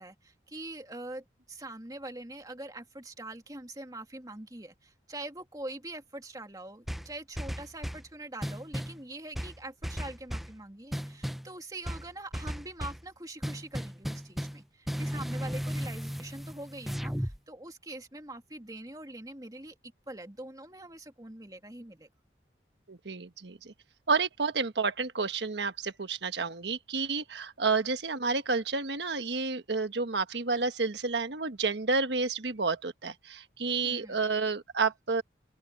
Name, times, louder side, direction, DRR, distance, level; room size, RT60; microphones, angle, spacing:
voice 1, 0.0-22.1 33.8-34.3, right 2 dB, 20° right, 2.4 m, -44 dB
sound 1, 6.9-8.1 8.4-9.0 9.3-10.6 10.9-11.5 11.8-13.0 13.4-14.6 14.9-17.4, equal, ahead, 0.5 m, -35 dB
voice 2, 22.9-23.7 24.1-35.2, right 4 dB, 80° right, 1.3 m, -30 dB
open air
head